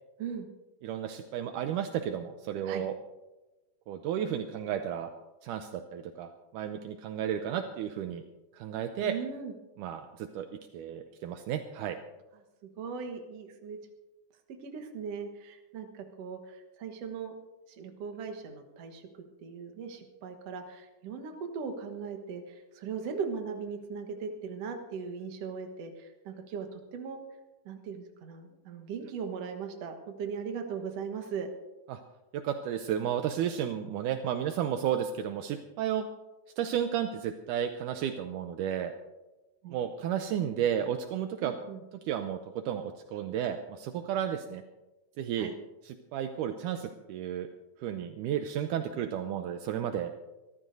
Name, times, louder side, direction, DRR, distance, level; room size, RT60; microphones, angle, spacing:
voice 1, 0.2-0.5 2.7-2.9 9.0-9.5 12.8-13.8 14.5-17.3 17.7-19.0 19.4-27.2 27.7-31.5 39.6-39.8 41.4-41.8 45.4-45.5, right 6 dB, 55° right, 5 dB, 2.1 m, -39 dB
voice 2, 0.8-2.9 3.9-5.1 5.4-8.2 8.5-9.1 9.8-10.5 10.7-12.0 31.9-32.0 32.3-36.1 36.6-38.9 39.7-41.5 42.1-44.6 45.2-45.5 45.8-47.5 47.8-50.1, right 9 dB, 80° right, 7 dB, 2.0 m, -33 dB
25.0 x 13.5 x 2.7 m, 1.1 s
omnidirectional pair, 3.9 m